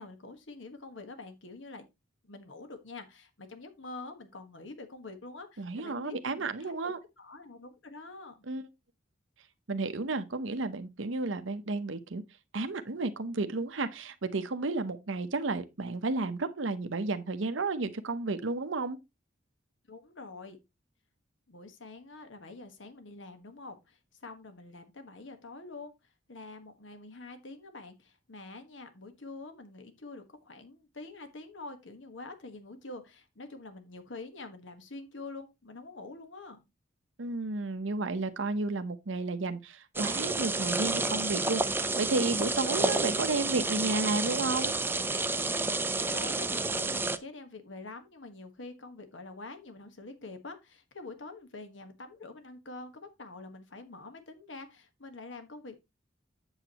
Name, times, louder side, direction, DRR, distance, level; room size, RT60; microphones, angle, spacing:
voice 1, 0.0-1.8 2.2-8.4 19.9-20.6 21.5-25.9 26.3-36.6 46.0-55.8, left 3 dB, 75° left, 1.4 m, -46 dB
voice 2, 5.6-7.0 8.5-8.6 9.7-12.2 12.5-19.0 37.2-44.7, right 3 dB, 85° right, 0.8 m, -32 dB
sound 1, 40.0-47.2, right 3 dB, 10° right, 0.5 m, -30 dB
8.1 x 7.9 x 2.9 m
head